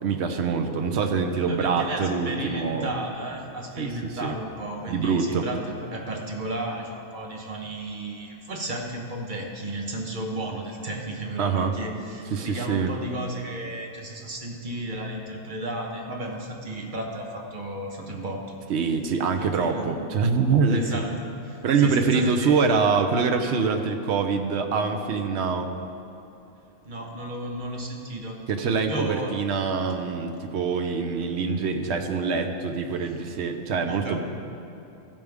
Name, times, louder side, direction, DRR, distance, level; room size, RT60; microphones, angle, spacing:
voice 1, 0.0-2.9 3.8-4.3 4.9-5.5 11.4-11.7 12.3-12.9 18.7-21.0 21.6-25.7 28.5-34.2, right 5 dB, 75° right, 5 dB, 1.0 m, -24 dB
voice 2, 1.4-18.6 19.4-20.0 20.7-22.6 26.8-28.4 28.9-29.4 33.0-33.2 33.9-34.2, right 1 dB, 45° right, 1 dB, 1.3 m, -34 dB
14.5 x 8.7 x 3.5 m, 2.9 s
omnidirectional pair, 1.2 m